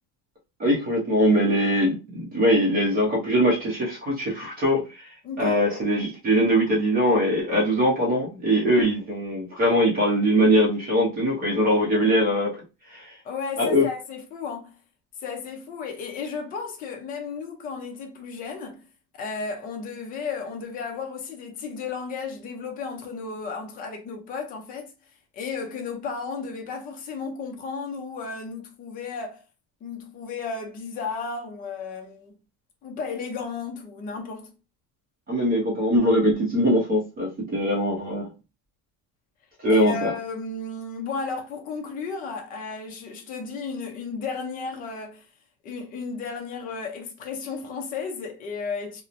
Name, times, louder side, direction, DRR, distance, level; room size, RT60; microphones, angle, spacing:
voice 1, 0.6-5.1 5.4-12.6 12.9-13.1 13.6-13.9 35.3-38.3 39.6-40.1, equal, 25° right, 0.6 m, -22 dB
voice 2, 5.2-5.6 13.2-14.8 15.2-18.9 19.1-24.9 25.3-29.4 29.8-32.3 32.8-34.5 39.7-45.3 45.6-49.0, left 5 dB, 25° left, 0.4 m, -34 dB
2.9 x 2.0 x 2.5 m
cardioid pair, 170°, 40 cm